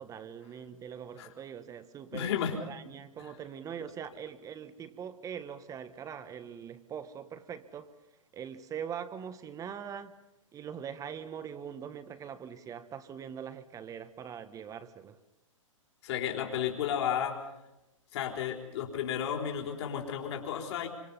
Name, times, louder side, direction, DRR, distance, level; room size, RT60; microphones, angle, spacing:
voice 1, 0.0-2.3 2.7-7.9 8.3-10.2 10.5-15.2, right 8 dB, 20° right, 1.3 m, -42 dB
voice 2, 2.1-2.5 3.2-3.3 16.0-17.4 18.1-20.9, left 9 dB, 50° left, 4.2 m, -33 dB
26.5 x 25.5 x 5.6 m
figure-of-eight pair, 115°, 17 cm